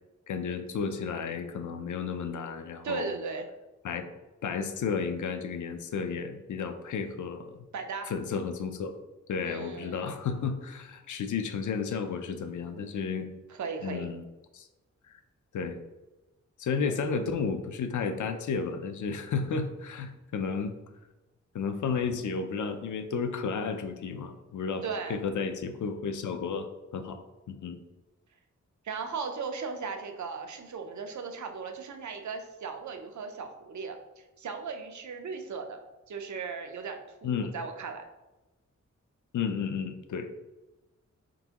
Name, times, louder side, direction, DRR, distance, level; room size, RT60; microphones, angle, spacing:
voice 1, 0.3-3.1 3.8-4.1 4.4-7.6 8.1-9.0 9.3-13.3 13.8-14.2 14.5-14.7 15.5-15.8 16.6-20.7 21.5-24.8 25.1-26.7 26.9-27.2 27.5-27.8 37.2-37.5 39.3-40.3, left 5 dB, 85° left, 8 dB, 0.5 m, -32 dB
voice 2, 2.8-3.5 7.7-8.1 9.4-10.0 13.5-14.1 24.8-25.2 28.8-35.8 36.1-38.0, right 5 dB, 70° right, 5 dB, 0.6 m, -37 dB
4.4 x 3.8 x 2.9 m, 1.1 s
wide cardioid pair, 100°, 30 cm